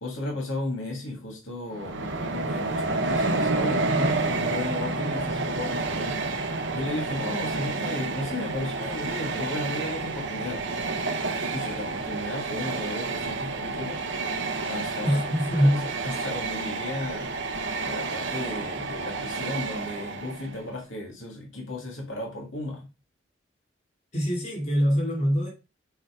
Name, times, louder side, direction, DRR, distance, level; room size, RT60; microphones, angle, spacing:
voice 1, 0.0-6.2 6.7-10.6 11.5-14.4 14.7-15.2 15.6-17.4 17.8-22.8, left 1 dB, 85° left, 2.1 m, -34 dB
Train, 1.7-20.6, right 3 dB, 70° right, 0.9 m, -29 dB
voice 2, 15.0-15.8 24.1-25.5, equal, 35° left, 3.0 m, -23 dB
7.8 x 2.8 x 4.9 m
head